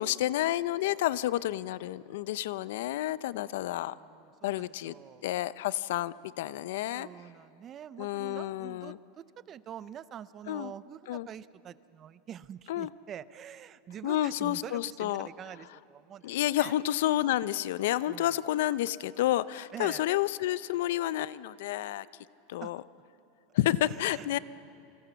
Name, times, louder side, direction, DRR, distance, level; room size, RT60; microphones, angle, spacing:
voice 1, 0.0-3.9 4.4-4.9 5.2-7.1 8.0-9.0 10.5-10.7 11.1-11.3 12.7-12.9 14.0-15.3 16.2-22.1 22.5-22.8 23.5-24.4, left 14 dB, 70° left, 18 dB, 0.6 m, -30 dB
voice 2, 4.0-5.3 6.9-16.3 16.6-16.8 18.1-18.4 19.7-20.1 22.6-22.7 23.8-24.4, right 9 dB, 25° right, 17 dB, 0.5 m, -45 dB
28.0 x 24.5 x 7.0 m, 2.6 s
supercardioid pair, 165°, 0 cm